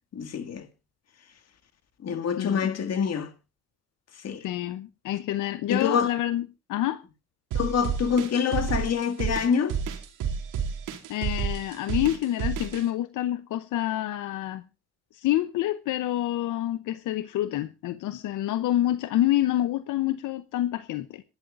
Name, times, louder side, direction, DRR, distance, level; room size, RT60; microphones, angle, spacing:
voice 1, 0.1-0.7 2.0-3.3 4.2-4.4 5.7-6.1 7.5-9.8, left 7 dB, 55° left, 2.2 m, -26 dB
voice 2, 2.4-2.8 4.4-7.0 11.1-14.6 15.1-21.2, left 13 dB, 85° left, 0.8 m, -27 dB
sound 1, 7.5-12.8, right 7 dB, 90° right, 2.6 m, -30 dB
26.5 x 11.5 x 2.5 m
cardioid pair, 90°, 30 cm